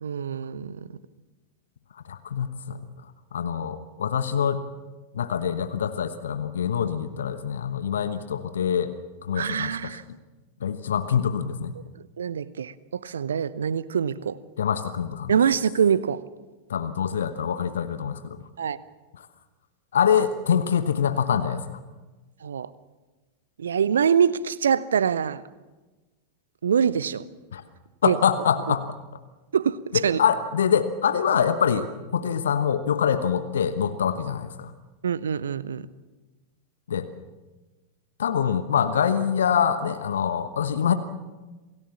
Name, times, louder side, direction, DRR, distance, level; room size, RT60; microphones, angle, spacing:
voice 1, 0.0-1.0 9.3-10.0 12.2-14.4 15.3-16.2 18.6-18.8 22.4-22.7 23.6-25.4 26.6-27.3 28.0-28.2 29.5-30.2 35.0-35.8, right 7 dB, 65° right, 0.8 m, -24 dB
voice 2, 1.9-2.8 3.3-4.6 5.1-8.9 9.2-9.9 10.6-11.8 14.6-15.3 16.7-18.5 19.2-19.3 19.9-21.8 27.5-27.6 28.0-28.9 29.9-34.7 36.9-37.1 38.2-40.9, left 8 dB, 65° left, 1.2 m, -25 dB
27.5 x 17.5 x 7.2 m
figure-of-eight pair, 90°, 0 cm